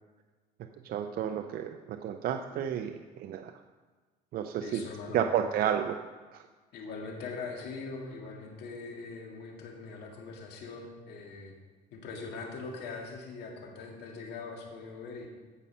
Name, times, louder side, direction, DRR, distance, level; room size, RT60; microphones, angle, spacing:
voice 1, 0.8-3.5 4.3-4.8 5.1-6.0 6.3-6.5, right 9 dB, 65° right, 6 dB, 0.6 m, -31 dB
voice 2, 4.6-5.2 6.7-11.6 11.9-15.3, left 4 dB, 75° left, 0 dB, 2.2 m, -42 dB
15.5 x 5.5 x 5.5 m, 1.4 s
cardioid pair, 110°, 17 cm